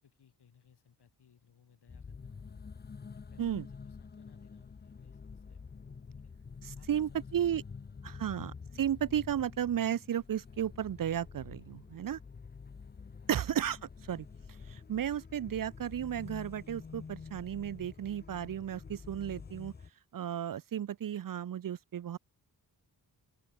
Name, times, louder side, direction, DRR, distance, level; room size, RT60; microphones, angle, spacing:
voice 1, 0.0-2.7 3.1-5.6 6.1-6.3 6.8-7.7 8.1-8.4 13.2-13.5, left 7 dB, 70° left, 7.1 m, -65 dB
sound 1, 1.9-19.9, left 5 dB, 25° left, 0.6 m, -48 dB
voice 2, 6.6-7.6 8.0-12.2 13.3-13.8 14.1-14.3 14.7-19.7 20.1-22.2, right 10 dB, 55° right, 0.6 m, -34 dB
open air
wide cardioid pair, 135°, 41 cm